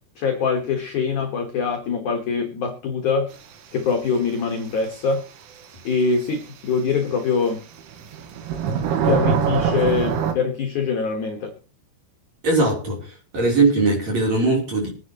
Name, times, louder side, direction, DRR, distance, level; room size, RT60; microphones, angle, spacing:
voice 1, 0.2-3.3 3.7-5.2 5.8-7.6 9.0-11.5, left 5 dB, 70° left, 3 dB, 1.8 m, -23 dB
sound 1, 5.6-5.7 7.8-10.3, right 7 dB, 80° right, 3.9 m, -23 dB
voice 2, 12.4-14.9, right 3 dB, 35° right, 0 dB, 4.2 m, -20 dB
24.0 x 9.6 x 3.0 m, 0.33 s
omnidirectional pair, 5.8 m